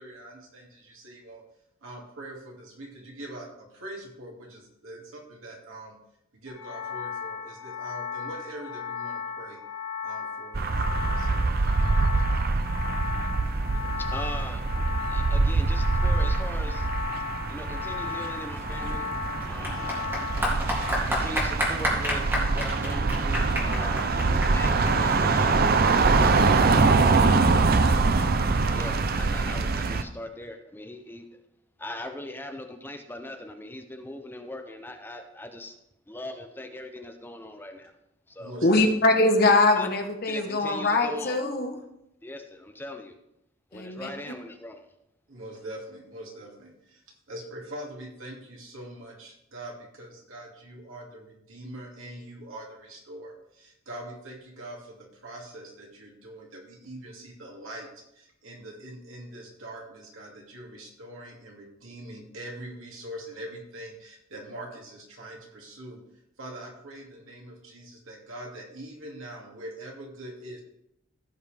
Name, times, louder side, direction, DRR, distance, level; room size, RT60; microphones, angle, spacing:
voice 1, 0.0-1.4 1.8-6.0 6.3-9.6 10.0-11.5 19.5-20.2 38.4-38.8 45.3-66.0 66.4-70.6, right 1 dB, 85° right, 2.5 m, -43 dB
sound 1, 6.5-20.9, left 5 dB, 70° left, 2.1 m, -36 dB
sound 2, 10.5-30.0, right 3 dB, 50° right, 0.6 m, -24 dB
voice 2, 14.0-14.6 15.1-16.9 17.5-19.1 19.4-20.2 21.1-25.6 26.1-26.6 28.7-31.3 31.8-35.8 36.1-37.9 38.3-38.5 39.8-39.9 40.3-41.4 42.2-43.1 43.7-44.8, left 1 dB, 10° left, 0.7 m, -40 dB
Clapping / Applause, 18.6-27.5, equal, 10° right, 2.8 m, -31 dB
voice 3, 38.6-41.8 43.7-44.1, left 2 dB, 50° left, 1.1 m, -22 dB
16.0 x 5.5 x 3.5 m
head